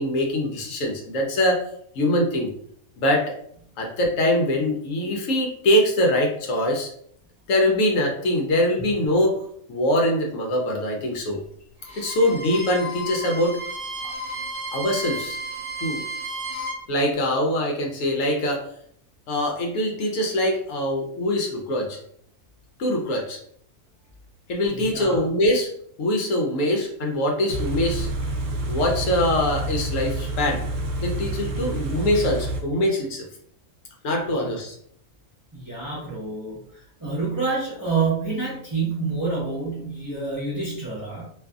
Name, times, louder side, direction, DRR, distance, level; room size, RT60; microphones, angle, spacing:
voice 1, 0.0-1.6 2.0-2.5 3.0-3.3 3.8-6.9 7.5-9.4 9.7-11.4 12.0-13.6 14.7-15.4 15.8-16.0 16.9-18.7 19.3-22.0 22.8-23.4 24.5-25.7 26.0-28.1 28.7-30.6 31.0-33.3 34.0-34.8, left 1 dB, 75° left, 1 dB, 0.9 m, -23 dB
Bowed string instrument, 11.8-16.8, right 1 dB, 50° right, 1.0 m, -33 dB
voice 2, 24.8-25.2 34.4-34.5 35.5-36.6 37.0-41.2, right 4 dB, 20° right, -7 dB, 0.7 m, -27 dB
Car / Idling, 27.5-32.6, right 2 dB, 65° right, 0.6 m, -28 dB
2.5 x 2.5 x 2.3 m, 0.66 s
omnidirectional pair, 1.4 m